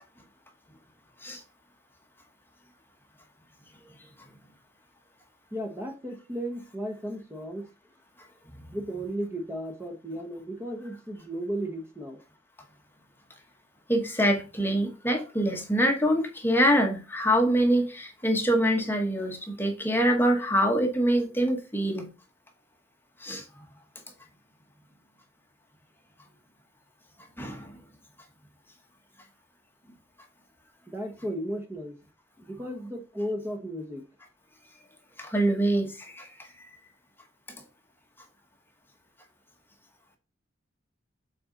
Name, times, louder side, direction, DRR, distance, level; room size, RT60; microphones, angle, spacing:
voice 1, 5.5-7.7 8.7-12.2 30.9-32.0 32.4-34.0, equal, 15° right, 1.1 m, -35 dB
voice 2, 13.9-22.1 23.2-23.4 27.4-27.7 35.2-36.5, equal, 10° left, 1.1 m, -25 dB
7.7 x 4.3 x 3.8 m
head